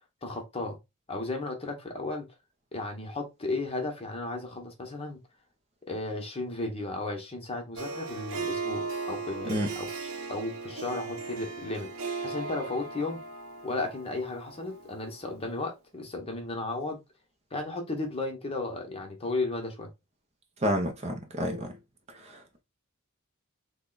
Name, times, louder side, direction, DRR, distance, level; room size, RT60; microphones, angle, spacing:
voice 1, 0.2-0.8 1.1-2.3 2.7-5.2 5.9-13.2 13.6-17.0 17.5-19.9, left 2 dB, 25° left, 0.9 m, -34 dB
Harp, 7.8-15.3, right 4 dB, 65° right, 0.8 m, -37 dB
voice 2, 20.6-21.7 22.2-22.6, equal, 30° right, 0.6 m, -30 dB
3.5 x 2.2 x 3.8 m
head